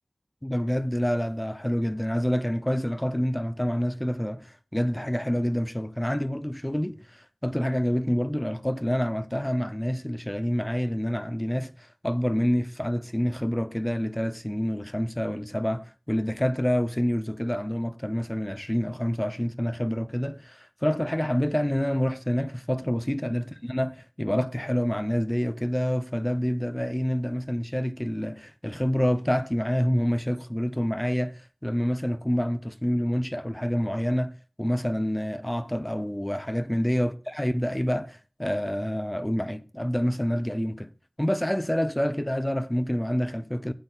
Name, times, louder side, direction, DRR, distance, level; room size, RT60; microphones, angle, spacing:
voice 1, 0.4-40.9 41.2-43.7, equal, 10° left, 0.6 m, -27 dB
12.0 x 8.5 x 2.3 m
wide cardioid pair, 45°, 0 cm